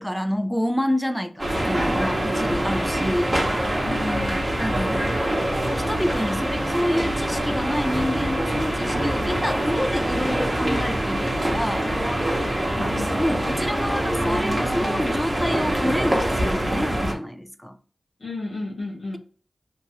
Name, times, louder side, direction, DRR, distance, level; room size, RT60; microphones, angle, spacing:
voice 1, 0.0-3.4 4.6-5.1 5.8-11.9 13.2-17.8, equal, 5° left, 0.4 m, -28 dB
sound 1, 1.4-17.1, right 1 dB, 25° right, 0.9 m, -24 dB
voice 2, 3.8-4.5 12.7-13.1 18.2-19.2, left 2 dB, 75° left, 1.0 m, -32 dB
2.9 x 2.4 x 2.8 m
cardioid pair, 50°, 0 cm